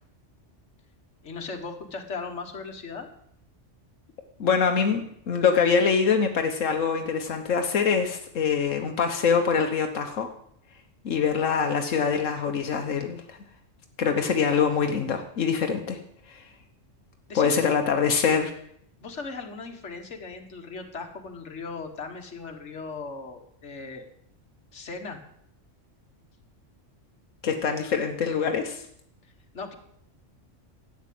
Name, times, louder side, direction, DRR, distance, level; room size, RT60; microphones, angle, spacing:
voice 1, 1.2-3.1 17.3-17.8 19.0-24.1 24.7-25.2 29.5-29.7, left 4 dB, 65° left, 4 dB, 1.9 m, -38 dB
voice 2, 4.4-5.0 5.3-10.3 11.0-13.4 14.0-16.0 16.3-16.4 17.3-18.5 27.4-28.8, left 6 dB, 90° left, 4 dB, 1.4 m, -24 dB
12.5 x 8.9 x 7.7 m, 0.69 s
omnidirectional pair, 1.3 m